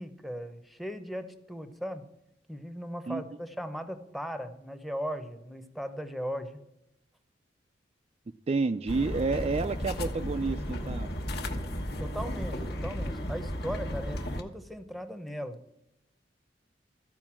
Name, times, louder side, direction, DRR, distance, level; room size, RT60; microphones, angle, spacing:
voice 1, 0.0-2.0 2.5-6.6 12.0-15.6, equal, ahead, 9 dB, 0.8 m, -38 dB
voice 2, 8.5-11.1, right 4 dB, 35° right, 8 dB, 0.4 m, -29 dB
sound 1, 8.9-14.4, equal, 60° left, 1.3 m, -34 dB
14.0 x 5.1 x 7.4 m, 0.86 s
head